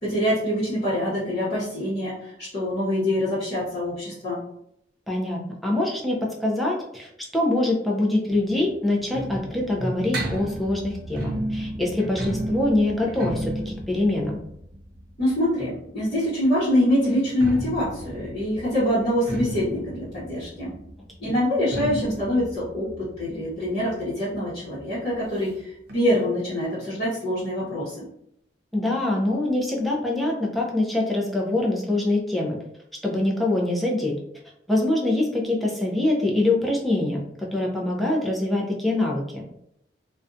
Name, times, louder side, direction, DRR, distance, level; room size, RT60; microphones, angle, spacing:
voice 1, 0.0-4.4 15.2-20.7 21.2-28.0, left 1 dB, 35° left, -13 dB, 0.9 m, -25 dB
voice 2, 5.1-14.4 28.7-32.6 33.0-34.1 34.7-39.4, left 2 dB, ahead, -3 dB, 0.4 m, -24 dB
sound 1, 8.3-16.0 17.1-24.5 24.8-24.9 25.1-25.2 25.9-26.0, right 1 dB, 60° right, 0.6 m, -33 dB
2.5 x 2.2 x 2.5 m, 0.75 s
head